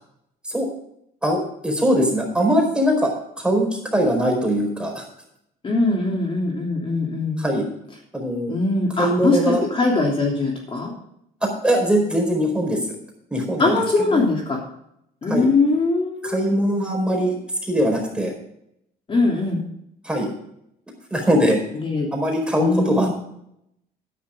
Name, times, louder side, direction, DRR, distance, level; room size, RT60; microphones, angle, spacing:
voice 1, 1.2-3.1 3.4-3.7 3.9-5.0 7.4-7.6 8.1-8.5 9.0-9.6 11.6-12.8 13.3-13.8 14.1-14.2 15.3-15.5 16.2-17.4 17.6-18.3 20.0-20.3 21.1-21.6 22.1-23.1, equal, 5° right, 1 dB, 4.6 m, -21 dB
voice 2, 5.6-7.4 8.5-10.9 13.6-14.6 15.2-16.5 19.1-19.6 21.7-22.1 22.5-23.1, left 3 dB, 30° left, -1 dB, 3.1 m, -21 dB
12.5 x 10.5 x 3.7 m, 0.75 s
cardioid pair, 110°, 17 cm